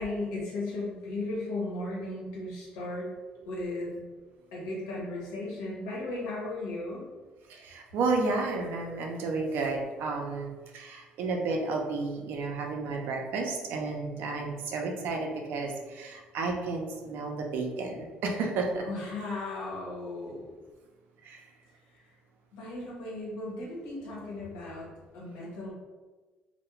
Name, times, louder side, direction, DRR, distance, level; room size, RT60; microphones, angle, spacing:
voice 1, 0.0-3.1 3.4-4.0 4.5-7.0 18.8-20.5 21.9-22.1 22.5-25.7, left 2 dB, 85° left, -4 dB, 0.9 m, -36 dB
voice 2, 7.5-18.8 21.2-21.4, right 3 dB, 75° right, 1 dB, 0.5 m, -32 dB
2.3 x 2.1 x 3.0 m, 1.3 s
supercardioid pair, 75°, 4 cm